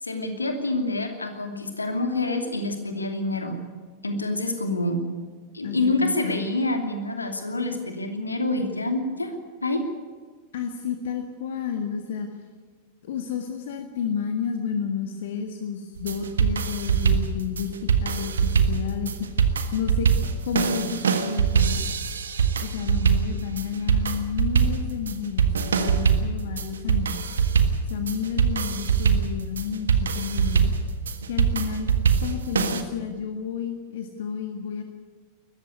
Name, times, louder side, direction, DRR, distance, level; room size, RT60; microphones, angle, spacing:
voice 1, 0.0-3.6 4.0-5.0 5.5-9.3 9.6-9.8, left 2 dB, 80° left, 6 dB, 2.7 m, -27 dB
voice 2, 5.6-6.4 10.5-12.3 13.0-20.1 20.4-21.8 22.6-25.5 25.8-27.2 27.8-30.7 31.3-31.9 32.2-34.8, left 7 dB, 60° left, 6 dB, 1.7 m, -31 dB
sound 1, 16.0-32.8, right 6 dB, 70° right, 1.5 m, -23 dB
21.0 x 14.5 x 9.6 m, 1.5 s
figure-of-eight pair, 90°, 0 cm